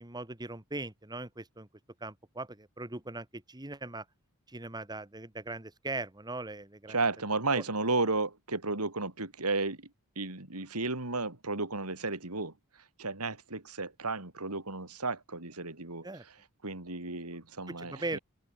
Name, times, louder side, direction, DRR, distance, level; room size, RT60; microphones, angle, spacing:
voice 1, 0.0-1.7 2.0-4.1 4.5-7.0 7.5-7.6 16.0-16.2 17.7-18.2, right 2 dB, 20° right, 2.1 m, -39 dB
voice 2, 6.9-9.9 10.2-12.5 13.0-16.1 16.6-18.2, right 3 dB, 85° right, 4.2 m, -33 dB
head